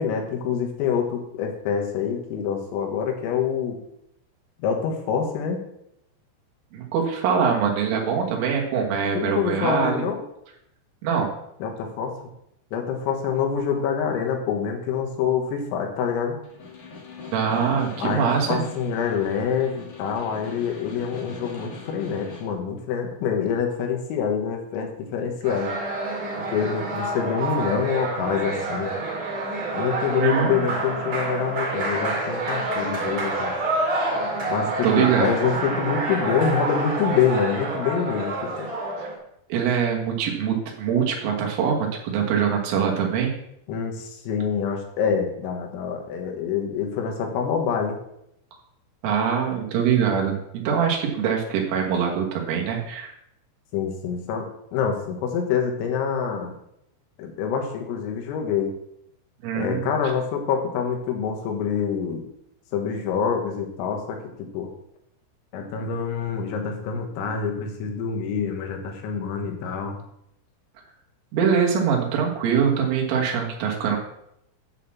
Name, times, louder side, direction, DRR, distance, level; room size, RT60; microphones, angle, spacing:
voice 1, 0.0-3.8 4.6-5.6 9.1-10.2 11.6-12.1 12.7-16.4 18.0-25.7 26.5-28.9 29.7-33.5 34.5-38.7 43.7-48.0 53.7-56.5 57.2-58.7 59.6-62.2 62.7-64.7 65.5-70.0, left 7 dB, 85° left, 2 dB, 4.0 m, -26 dB
voice 2, 6.7-10.0 11.0-11.3 17.3-18.7 30.2-30.6 34.8-35.3 39.0-39.1 39.5-43.3 49.0-53.1 59.4-59.9 71.3-74.0, right 7 dB, 75° right, 0 dB, 3.9 m, -23 dB
Snare drum, 16.4-22.6, left 4 dB, 55° left, 1.6 m, -41 dB
sound 1, 25.4-39.2, right 2 dB, 50° right, 1.8 m, -28 dB
10.0 x 4.1 x 7.3 m, 0.77 s
omnidirectional pair, 6.0 m